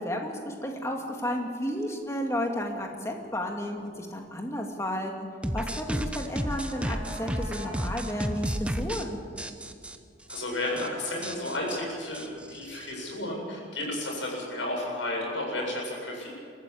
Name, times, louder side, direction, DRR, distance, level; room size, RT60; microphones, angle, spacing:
voice 1, 0.0-5.3 5.5-9.2, equal, 15° left, 1 dB, 2.3 m, -32 dB
sound 1, 5.4-9.1 9.4-10.0 10.3-10.4 10.7-10.9 11.2-12.9, equal, 5° right, 0.8 m, -32 dB
sound 2, 5.9-8.3 8.6-8.7, equal, 40° right, 5.4 m, -45 dB
voice 2, 10.3-16.3, left 1 dB, 80° left, -1 dB, 7.8 m, -32 dB
23.0 x 14.0 x 8.6 m, 2.4 s
head